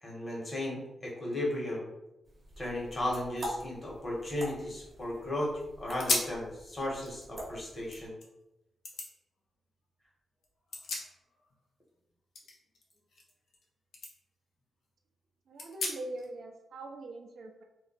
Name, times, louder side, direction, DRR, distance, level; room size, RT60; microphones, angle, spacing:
voice 1, 0.0-1.9 2.6-5.5 5.8-8.2, left 1 dB, 30° left, -4 dB, 1.0 m, -35 dB
sound 1, 2.2-8.1, equal, 40° right, 0.8 m, -46 dB
sound 2, 2.5-2.6 2.9-5.1 5.5-5.6 6.0-6.4 6.9-8.3 8.8-9.1 10.4-11.6 11.8-13.6 13.9-14.1 14.6-14.7 15.6-16.3, left 3 dB, 75° left, 0.6 m, -38 dB
voice 2, 15.5-17.6, right 2 dB, 70° right, 3 dB, 0.4 m, -42 dB
2.2 x 2.0 x 3.8 m, 0.93 s
cardioid pair, 110°, 0 cm